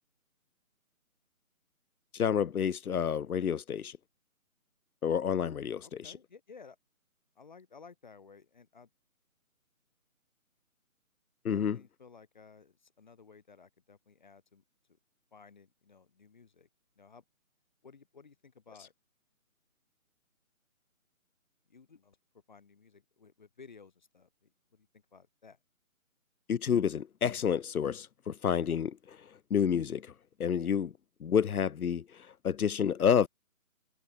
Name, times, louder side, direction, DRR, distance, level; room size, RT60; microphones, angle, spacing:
voice 1, 2.1-4.0 5.0-6.1 11.4-11.8 26.5-29.2 29.5-30.1 30.4-30.9 31.2-33.3, left 8 dB, 85° left, 0.8 m, -29 dB
voice 2, 5.8-6.8 7.3-8.9 11.5-14.6 15.3-16.7 17.0-17.2 17.8-18.9 21.7-22.2 22.5-25.6 33.0-33.2, left 5 dB, 30° left, 3.4 m, -56 dB
hypercardioid pair, 175°, 42 cm